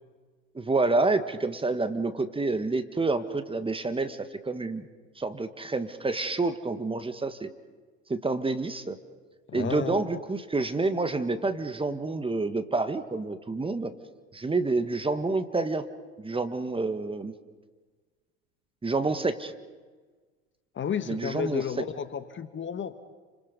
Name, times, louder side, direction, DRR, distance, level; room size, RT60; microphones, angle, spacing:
voice 1, 0.6-4.9 5.2-7.5 8.1-9.0 9.5-13.9 14.3-15.8 16.2-17.3 18.8-19.5 21.1-21.6, right 3 dB, 15° right, 9 dB, 1.8 m, -28 dB
voice 2, 9.5-10.0 20.8-22.9, left 7 dB, 30° left, 11 dB, 1.7 m, -32 dB
29.5 x 26.5 x 5.4 m, 1.4 s
hypercardioid pair, 75°, 36 cm